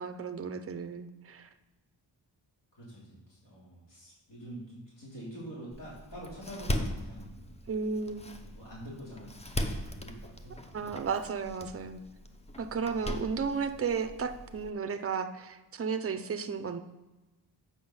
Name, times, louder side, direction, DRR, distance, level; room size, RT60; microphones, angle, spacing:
voice 1, 0.0-1.5 7.7-8.2 10.7-12.0 12.6-16.8, right 5 dB, 30° right, 9 dB, 0.5 m, -34 dB
voice 2, 2.7-7.5 8.4-11.1, equal, 65° left, -7 dB, 3.1 m, -46 dB
Door, 5.7-14.7, left 1 dB, 15° left, 0.6 m, -39 dB
7.8 x 5.7 x 5.5 m, 1.1 s
wide cardioid pair, 140°, 44 cm